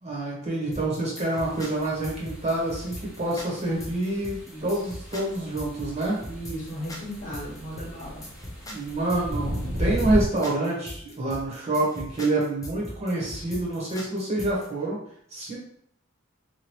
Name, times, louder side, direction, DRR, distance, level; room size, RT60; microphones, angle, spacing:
voice 1, 0.0-6.2 8.6-15.0 15.3-15.6, right 2 dB, 30° right, -4 dB, 1.0 m, -27 dB
sound 1, 0.7-14.7, left 1 dB, 15° left, 0.6 m, -40 dB
sound 2, 1.4-10.2, equal, 5° right, 0.9 m, -36 dB
voice 2, 6.2-8.2, equal, 40° left, -4 dB, 1.0 m, -36 dB
2.9 x 2.6 x 2.9 m, 0.66 s
head